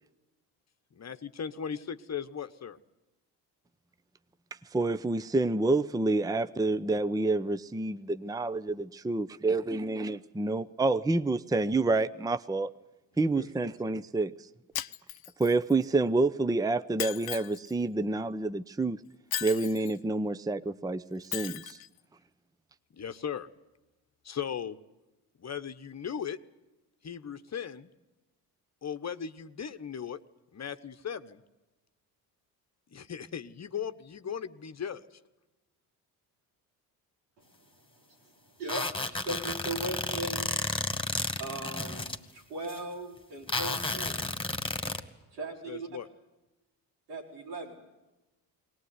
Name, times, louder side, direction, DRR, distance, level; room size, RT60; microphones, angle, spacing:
voice 1, 0.9-2.8 13.3-13.5 22.9-23.5 24.2-24.8 25.4-26.4 27.0-27.9 28.8-30.2 30.5-31.4 32.9-35.2 45.7-46.1, left 8 dB, 35° left, 10 dB, 1.2 m, -37 dB
voice 2, 4.7-12.7 13.2-14.3 15.4-19.0 19.4-21.8, right 3 dB, 10° right, 14 dB, 0.7 m, -28 dB
Shatter, 14.7-15.7 17.0-17.7 19.3-20.0 21.3-21.9, left 12 dB, 50° left, 0.9 m, -37 dB
voice 3, 38.6-40.8 41.4-44.2 45.3-45.9 47.1-47.7, right 2 dB, 85° right, -1 dB, 5.1 m, -38 dB
sound 1, 38.7-42.2 42.6-42.8 43.5-45.0, left 2 dB, 10° left, 2.1 m, -32 dB
21.0 x 19.0 x 9.7 m, 1.0 s
hypercardioid pair, 55°, 47 cm